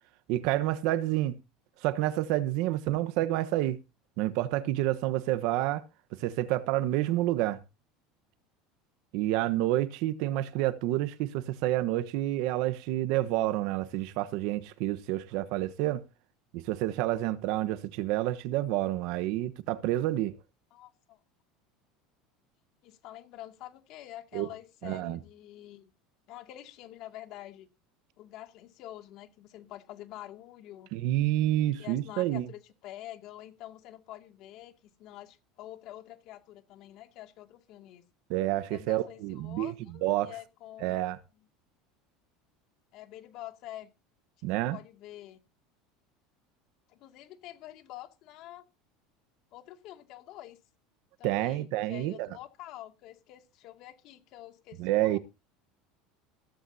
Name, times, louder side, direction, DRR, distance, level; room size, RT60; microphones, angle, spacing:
voice 1, 0.3-1.4 1.8-3.8 4.2-5.8 6.2-7.6 9.1-16.0 16.5-20.3 24.3-24.5 24.8-25.2 30.9-32.4 38.3-39.7 40.0-40.3 40.8-41.2 44.4-44.8 51.2-52.3 54.8-55.2, right 15 dB, 65° right, 1.2 m, -29 dB
voice 2, 20.7-21.2 22.8-25.9 26.3-27.7 28.2-30.9 31.8-34.7 35.0-38.0 38.7-41.0 41.4-41.5 42.9-43.9 44.4-45.4 46.9-48.6 49.5-50.6 51.2-55.2, left 14 dB, 55° left, 2.3 m, -47 dB
15.5 x 14.0 x 2.8 m
supercardioid pair, 130°, 0 cm